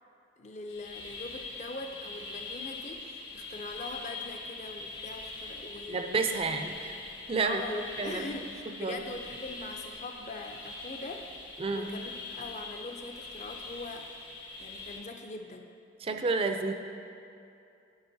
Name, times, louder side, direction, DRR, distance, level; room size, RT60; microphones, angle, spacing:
voice 1, 0.4-6.0 6.3-6.6 7.4-14.1 14.6-15.7, left 2 dB, 40° left, 4 dB, 0.5 m, -42 dB
sound 1, 0.6-15.0, left 3 dB, 60° left, 1.6 m, -43 dB
voice 2, 5.9-7.0 7.3-7.6 8.0-8.2 8.8-9.0 11.6-11.9 16.0-16.7, right 4 dB, 30° right, 6 dB, 0.4 m, -30 dB
14.5 x 5.2 x 2.7 m, 2.6 s
head